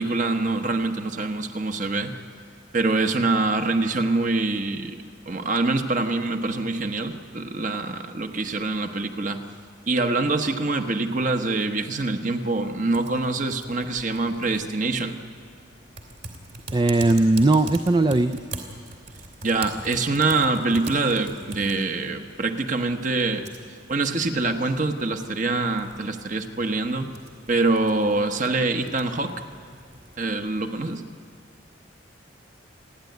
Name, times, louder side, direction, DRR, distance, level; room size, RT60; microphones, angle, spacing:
voice 1, 0.0-2.2 2.7-5.0 5.3-9.4 9.9-15.2 19.4-23.4 23.9-27.1 27.5-29.3 30.2-31.0, right 3 dB, 40° right, 6 dB, 1.1 m, -25 dB
Typing, 12.9-30.9, right 3 dB, 55° right, 3.0 m, -43 dB
voice 2, 16.7-18.3, right 2 dB, 25° right, 8 dB, 0.4 m, -19 dB
29.5 x 10.5 x 9.4 m, 2.3 s
head